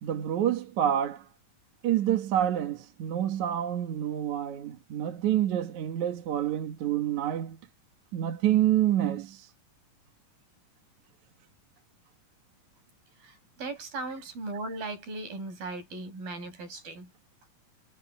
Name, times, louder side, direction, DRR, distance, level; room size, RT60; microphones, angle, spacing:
voice 1, 0.0-1.3 1.8-7.6 8.1-9.5, right 11 dB, 60° right, 2.7 m, -27 dB
voice 2, 13.2-17.1, right 2 dB, 85° right, 9.8 m, -38 dB
omnidirectional pair, 4.0 m